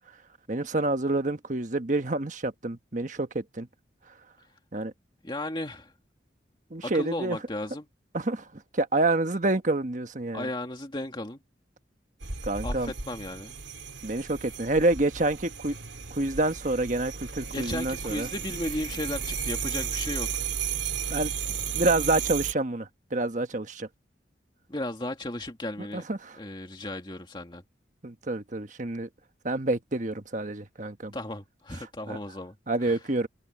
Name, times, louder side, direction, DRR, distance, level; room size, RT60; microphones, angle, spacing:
voice 1, 0.5-3.7 4.7-4.9 6.7-7.4 8.1-8.4 8.7-10.5 12.5-12.9 14.0-15.7 16.1-18.3 21.1-21.3 21.7-23.9 25.9-26.3 28.0-29.1 29.4-31.1 32.1-32.2 32.7-33.3, right 2 dB, 40° right, 1.3 m, -28 dB
voice 2, 5.2-5.9 6.8-7.9 10.3-11.4 12.6-13.6 17.5-20.4 24.7-26.1 26.4-27.6 31.1-32.5 32.8-33.0, left 1 dB, 25° left, 2.1 m, -35 dB
sound 1, 12.2-22.5, right 6 dB, 80° right, 2.5 m, -34 dB
head